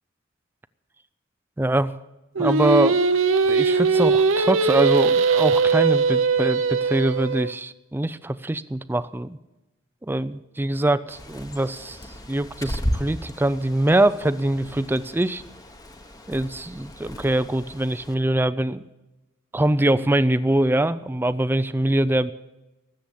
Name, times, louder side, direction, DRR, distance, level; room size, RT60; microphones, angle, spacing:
voice 1, 1.6-1.9 2.4-3.0 3.5-9.4 10.0-12.0 12.3-15.4 16.3-18.8 19.5-22.3, right 1 dB, 10° right, 15 dB, 0.4 m, -23 dB
Singing, 2.4-7.5, right 4 dB, 75° right, 0.7 m, -20 dB
Bird, 11.1-18.1, equal, 20° left, 1.0 m, -35 dB
19.5 x 7.8 x 7.2 m, 1.0 s
head